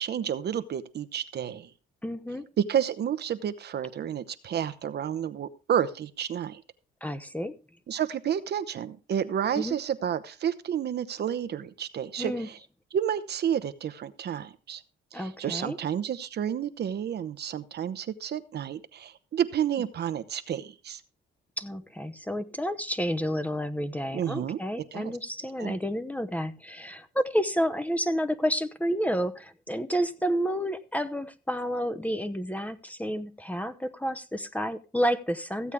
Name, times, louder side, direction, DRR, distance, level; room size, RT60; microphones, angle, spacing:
voice 1, 0.0-1.7 2.6-6.6 7.9-12.6 12.9-14.8 15.1-21.0 24.1-24.6 24.9-25.1 25.6-25.8, right 9 dB, 55° right, 13 dB, 0.8 m, -30 dB
voice 2, 2.0-2.4 7.0-7.5 9.5-9.8 12.2-12.5 15.1-15.8 21.6-35.7, equal, 5° left, 11 dB, 0.8 m, -30 dB
15.0 x 8.2 x 3.5 m, 0.32 s
cardioid pair, 90°, 20 cm